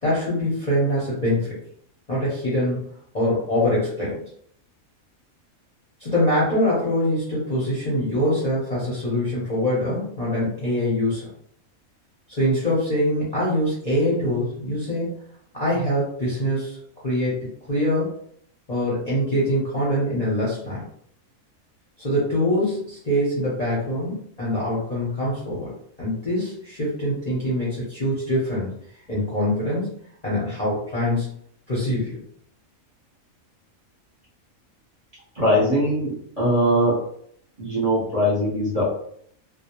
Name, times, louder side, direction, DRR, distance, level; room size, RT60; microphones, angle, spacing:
voice 1, 0.0-1.6 2.1-4.2 6.0-11.2 12.3-15.1 15.5-16.8 17.0-18.1 18.7-20.8 22.0-25.7 26.0-28.7 29.1-29.9 30.2-31.3 31.7-32.2, left 1 dB, 40° left, -7 dB, 0.7 m, -24 dB
voice 2, 35.3-37.0 37.6-38.9, equal, 30° right, -8 dB, 0.8 m, -21 dB
2.2 x 2.1 x 2.8 m, 0.66 s
omnidirectional pair, 1.5 m